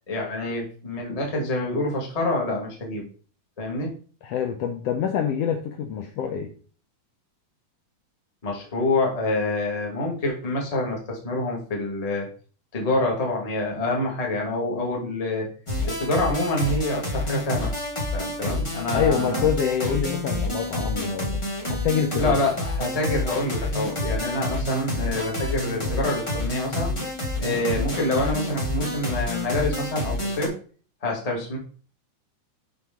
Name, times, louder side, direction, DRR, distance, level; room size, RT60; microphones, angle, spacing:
voice 1, 0.1-3.1 3.6-3.9 8.4-12.3 12.7-15.5 16.0-17.8 18.1-19.5 22.2-26.9 27.4-30.5 31.0-31.6, left 2 dB, 25° left, -1 dB, 0.8 m, -26 dB
voice 2, 4.2-6.5 18.9-21.4 21.7-22.4, left 7 dB, 90° left, 5 dB, 1.4 m, -26 dB
sound 1, 15.7-30.5, left 1 dB, 40° left, 0.4 m, -28 dB
6.1 x 5.7 x 3.6 m, 0.42 s
omnidirectional pair, 3.6 m